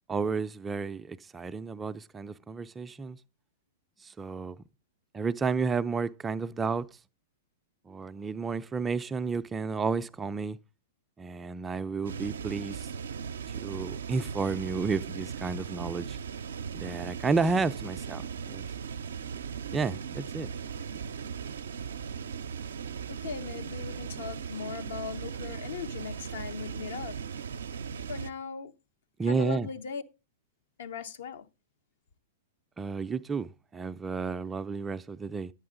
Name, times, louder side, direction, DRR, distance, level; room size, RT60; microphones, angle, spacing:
voice 1, 0.1-3.2 4.0-4.6 5.1-6.9 7.9-10.6 11.2-12.9 13.5-16.2 16.7-18.7 19.7-20.5 29.2-29.7 32.8-35.5, right 4 dB, 15° right, 0.4 m, -31 dB
sound 1, 12.0-28.3, right 6 dB, 75° right, 0.5 m, -38 dB
voice 2, 23.1-27.1 28.1-28.7 29.3-30.0 30.8-31.5, left 6 dB, 65° left, 0.9 m, -38 dB
10.5 x 8.6 x 3.8 m
hypercardioid pair, 105°, 0 cm